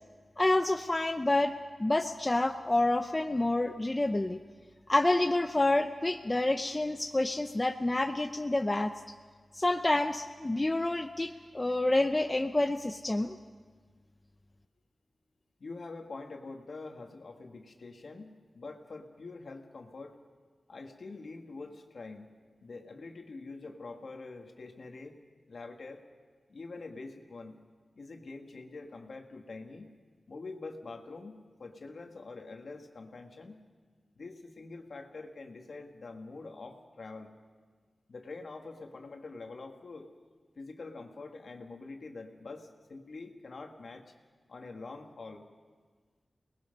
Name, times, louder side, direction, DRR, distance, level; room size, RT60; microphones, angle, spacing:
voice 1, 0.4-1.5 1.8-4.4 4.9-8.9 9.5-13.4, left 2 dB, 20° left, 6 dB, 0.7 m, -28 dB
voice 2, 15.6-20.2 20.7-22.3 22.6-25.2 25.5-26.0 26.5-27.6 28.0-29.9 30.3-33.6 34.1-37.3 38.1-40.1 40.6-44.1 44.5-45.4, left 3 dB, 65° left, 3 dB, 2.0 m, -45 dB
29.5 x 20.0 x 5.4 m, 1.5 s
wide cardioid pair, 110°, 0 cm